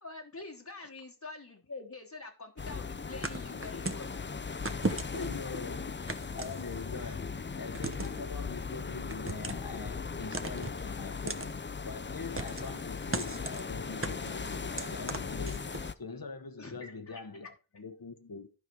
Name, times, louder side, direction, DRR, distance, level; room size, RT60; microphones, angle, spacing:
voice 1, 0.0-4.1 4.9-5.3 6.9-7.2 16.6-17.2, left 3 dB, 50° left, 1.2 m, -45 dB
sound 1, 2.6-15.9, left 5 dB, 30° left, 0.5 m, -38 dB
sound 2, 3.2-4.1 4.7-5.4 6.1-7.0 7.7-8.2 9.1-9.7 10.3-10.8 11.3-11.5 12.4-12.8 13.1-13.6 14.0-15.9, right 3 dB, 35° right, 0.9 m, -36 dB
voice 2, 3.5-3.8 4.7-4.8 5.1-5.9 6.3-11.6 11.8-18.5, left 4 dB, 75° left, 1.0 m, -43 dB
12.0 x 5.0 x 4.6 m
wide cardioid pair, 40°, 36 cm